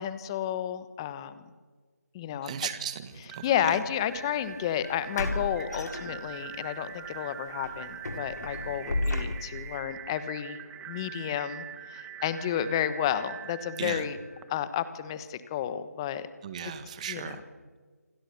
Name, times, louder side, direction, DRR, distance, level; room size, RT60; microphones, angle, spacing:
voice 1, 0.0-1.3 2.1-2.6 3.4-10.6 10.9-14.2 14.5-16.3 16.6-16.7 17.1-17.4, left 10 dB, 15° left, 13 dB, 1.1 m, -31 dB
voice 2, 2.4-3.8 13.8-14.0 16.4-17.4, right 8 dB, 25° right, 10 dB, 1.8 m, -36 dB
sound 1, 3.3-15.1, right 9 dB, 10° right, 1.3 m, -44 dB
sound 2, 4.0-4.2 5.1-6.6 7.0-7.2 7.6-9.7, left 2 dB, 80° left, 4.5 m, -33 dB
28.0 x 23.5 x 7.1 m, 1.4 s
figure-of-eight pair, 160°, 9 cm